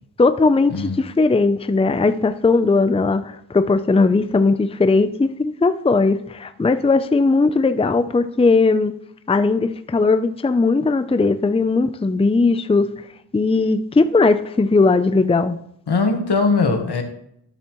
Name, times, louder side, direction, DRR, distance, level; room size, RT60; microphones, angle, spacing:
voice 1, 0.2-8.9 9.3-12.9 13.3-15.6, left 3 dB, 15° left, 0.5 m, -18 dB
voice 2, 0.7-1.0 15.9-17.0, left 4 dB, 80° left, 1.5 m, -20 dB
12.5 x 7.1 x 3.1 m
cardioid pair, 50°, 39 cm